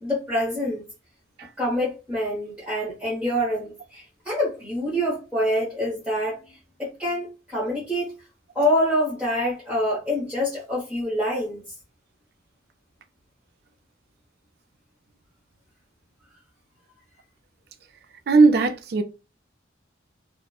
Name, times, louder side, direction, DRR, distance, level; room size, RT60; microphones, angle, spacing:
voice 1, 0.0-0.8 1.4-8.1 8.5-11.6, equal, 5° right, 0.9 m, -26 dB
voice 2, 18.3-19.0, right 3 dB, 55° right, 0.4 m, -17 dB
2.8 x 2.1 x 2.2 m
head